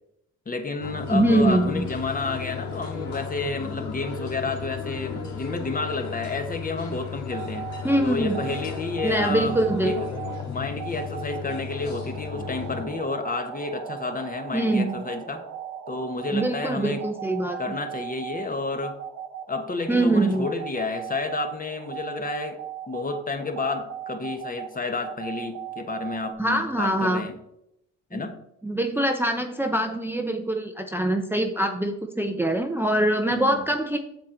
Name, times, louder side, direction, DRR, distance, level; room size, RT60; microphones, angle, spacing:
voice 1, 0.5-7.7 8.0-10.0 10.5-15.4 15.9-17.0 17.6-19.0 19.5-22.6 22.9-27.3 28.1-28.4 33.3-33.7, left 3 dB, 30° left, 7 dB, 1.2 m, -30 dB
sound 1, 0.8-12.8, left 6 dB, 70° left, 1.9 m, -35 dB
voice 2, 1.1-1.9 7.8-8.4 9.0-9.9 14.5-15.1 16.3-17.7 19.9-20.5 26.4-27.2 28.1-28.3 28.6-34.0, right 1 dB, 5° right, 4 dB, 0.7 m, -23 dB
sound 2, 7.3-26.3, right 9 dB, 85° right, 1.0 m, -38 dB
7.4 x 7.4 x 3.8 m, 0.80 s
cardioid pair, 90°, 30 cm